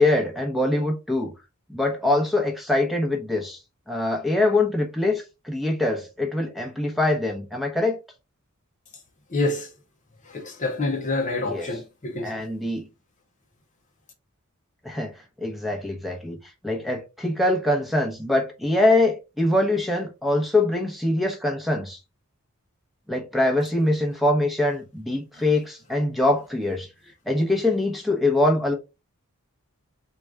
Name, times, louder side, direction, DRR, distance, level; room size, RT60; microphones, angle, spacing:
voice 1, 0.0-1.3 1.7-3.6 3.9-8.0 11.4-11.8 12.2-12.9 14.8-15.1 15.4-16.4 16.6-22.0 23.1-26.9 27.3-28.7, left 2 dB, ahead, 1.0 m, -23 dB
voice 2, 9.3-9.7 10.3-12.4, left 2 dB, 35° left, 0.7 m, -27 dB
3.8 x 2.4 x 4.6 m
head